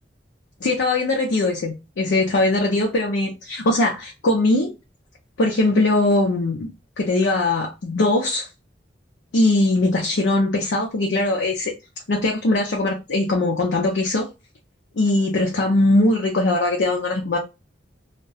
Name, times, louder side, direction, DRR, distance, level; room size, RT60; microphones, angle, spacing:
voice 1, 0.6-4.7 5.4-6.7 7.0-8.5 9.3-11.7 12.1-14.3 15.0-17.4, left 2 dB, 75° left, 0.5 m, -20 dB
2.3 x 2.1 x 2.7 m
head